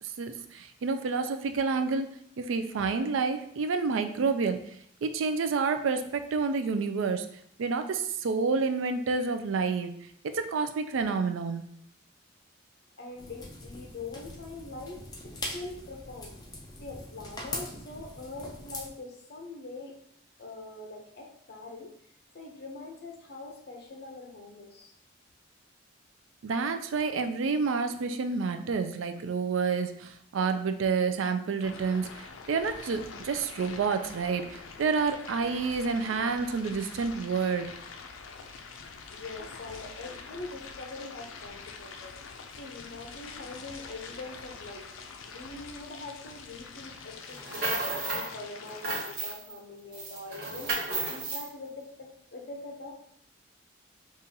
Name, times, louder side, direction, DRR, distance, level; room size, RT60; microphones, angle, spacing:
voice 1, 0.0-2.1 2.4-4.6 5.0-7.3 7.6-9.9 10.2-11.6 26.4-37.7, right 4 dB, 75° right, 8 dB, 0.4 m, -29 dB
voice 2, 13.0-16.3 16.8-19.9 20.4-21.9 22.3-24.9 39.1-42.1 42.6-44.9 45.3-52.9, left 3 dB, 55° left, 1 dB, 0.7 m, -43 dB
sound 1, 13.2-18.9, left 2 dB, 20° left, 0.5 m, -41 dB
sound 2, 31.6-49.4, left 5 dB, 85° left, 0.4 m, -45 dB
sound 3, 47.3-48.3 48.6-49.6 49.9-51.5, right 3 dB, 50° right, 0.9 m, -33 dB
5.2 x 2.4 x 2.8 m, 0.69 s
head